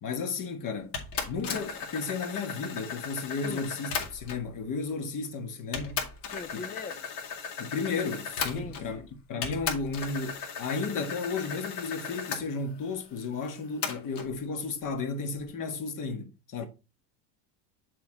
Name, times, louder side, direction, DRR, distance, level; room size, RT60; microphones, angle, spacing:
voice 1, 0.0-0.9 1.3-6.0 6.5-6.7 7.6-16.7, left 4 dB, 40° left, 1.5 m, -33 dB
sound 1, 0.9-4.5 5.2-5.3 5.7-9.0 9.4-12.4 13.8-14.3, left 6 dB, 60° left, 2.2 m, -36 dB
voice 2, 6.3-7.0 8.5-9.1, left 4 dB, 20° left, 0.4 m, -40 dB
6.7 x 4.9 x 3.8 m
supercardioid pair, 115°, 47 cm